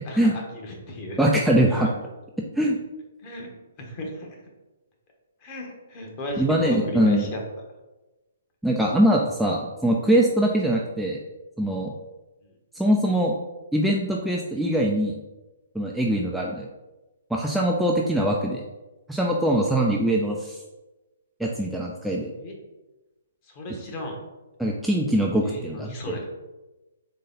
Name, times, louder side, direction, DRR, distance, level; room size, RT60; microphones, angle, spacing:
voice 1, 0.0-1.2 1.7-1.9 3.2-3.5 3.8-4.4 5.4-7.4 22.3-22.6 23.4-24.2 25.4-26.2, left 1 dB, 35° left, 0 dB, 1.2 m, -35 dB
voice 2, 1.2-1.9 2.6-2.8 6.4-7.3 8.6-11.2 11.6-11.9 12.7-13.3 13.7-15.2 15.8-16.7 17.3-18.6 19.1-20.6 21.4-22.3 24.6-26.2, right 1 dB, ahead, -3 dB, 0.4 m, -22 dB
3.9 x 3.2 x 3.9 m, 1.1 s
hypercardioid pair, 145°, 0 cm